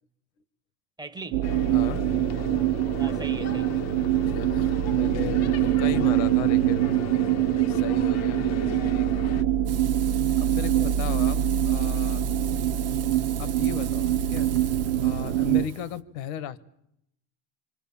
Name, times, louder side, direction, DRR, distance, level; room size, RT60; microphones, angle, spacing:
voice 1, 1.0-1.5 3.0-3.8 8.6-9.7 10.5-11.0, right 3 dB, 10° right, 1.3 m, -42 dB
sound 1, 1.3-15.7, right 12 dB, 65° right, 1.4 m, -24 dB
sound 2, 1.4-9.4, left 6 dB, 30° left, 1.0 m, -36 dB
voice 2, 1.7-2.1 4.3-6.9 7.7-8.5 8.9-9.8 10.4-11.4 11.7-12.2 13.4-14.5 14.9-16.6, left 9 dB, 65° left, 1.6 m, -36 dB
Frying (food), 9.7-16.0, right 9 dB, 30° right, 1.1 m, -39 dB
26.0 x 26.0 x 7.2 m
cardioid pair, 165°, 49 cm